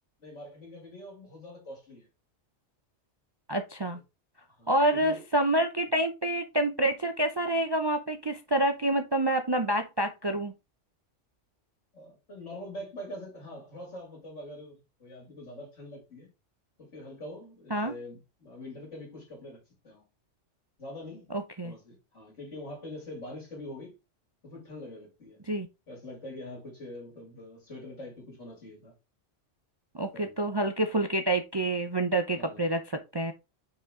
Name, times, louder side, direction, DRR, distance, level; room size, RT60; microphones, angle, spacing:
voice 1, 0.2-2.1 4.6-5.2 11.9-16.3 16.8-20.0 20.8-21.3 21.6-23.9 24.4-25.4 25.9-28.9 30.1-30.5 32.4-32.7, left 1 dB, 75° left, 3.0 m, -44 dB
voice 2, 3.5-4.0 4.7-10.5 17.7-17.9 21.3-21.7 25.5-25.7 29.9-33.3, right 1 dB, 35° right, 0.4 m, -27 dB
5.7 x 4.7 x 3.6 m
omnidirectional pair, 1.3 m